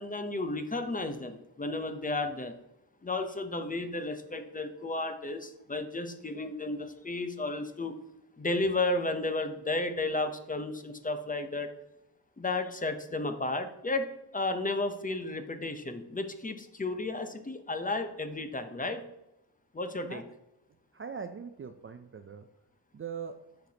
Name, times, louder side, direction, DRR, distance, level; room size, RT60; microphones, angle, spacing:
voice 1, 0.0-2.6 3.0-7.9 8.4-11.7 12.4-14.1 14.3-19.0 19.7-20.2, left 2 dB, 20° left, 8 dB, 0.7 m, -33 dB
voice 2, 20.9-22.5 22.9-23.4, right 6 dB, 35° right, 8 dB, 0.4 m, -41 dB
10.0 x 6.6 x 2.8 m, 0.90 s
wide cardioid pair, 130°, 41 cm